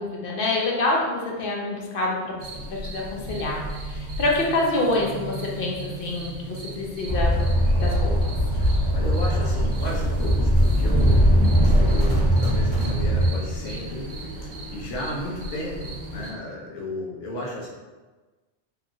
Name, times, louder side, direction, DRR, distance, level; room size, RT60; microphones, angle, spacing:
voice 1, 0.0-3.6 3.9-7.3 7.7-8.3, left 2 dB, 60° left, -2 dB, 0.7 m, -27 dB
sound 1, 2.4-16.3, right 2 dB, 65° right, 0.7 m, -36 dB
sound 2, 7.1-13.3, equal, 35° right, 0.4 m, -20 dB
voice 2, 8.5-14.1 14.7-17.7, left 1 dB, 85° left, -2 dB, 1.0 m, -34 dB
2.9 x 2.5 x 2.5 m, 1.3 s
omnidirectional pair, 1.2 m